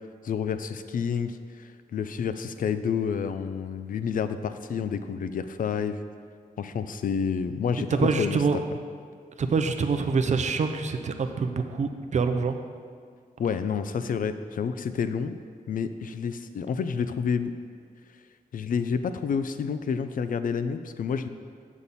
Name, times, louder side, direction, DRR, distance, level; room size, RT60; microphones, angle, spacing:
voice 1, 0.2-6.0 6.6-8.4 13.4-15.4 15.7-17.5 18.5-21.3, left 6 dB, 65° left, 11 dB, 0.4 m, -29 dB
voice 2, 8.0-8.6 9.4-12.6, right 4 dB, 50° right, 7 dB, 0.5 m, -25 dB
8.3 x 7.2 x 4.1 m, 2.1 s
wide cardioid pair, 155°, 15 cm